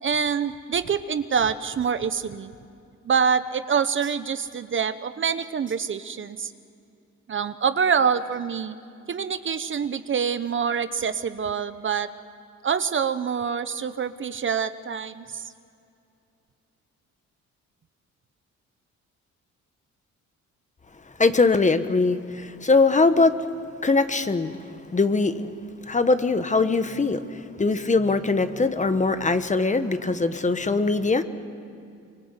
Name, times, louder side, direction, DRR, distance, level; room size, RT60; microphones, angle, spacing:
voice 1, 0.0-2.5 3.0-6.5 7.3-8.8 9.1-12.1 12.6-15.5, right 6 dB, 40° right, 12 dB, 1.0 m, -26 dB
voice 2, 21.2-23.6 23.8-24.5 24.9-25.5 25.9-31.2, left 3 dB, 25° left, 10 dB, 1.3 m, -21 dB
24.5 x 24.0 x 8.2 m, 2.5 s
cardioid pair, 90°, 30 cm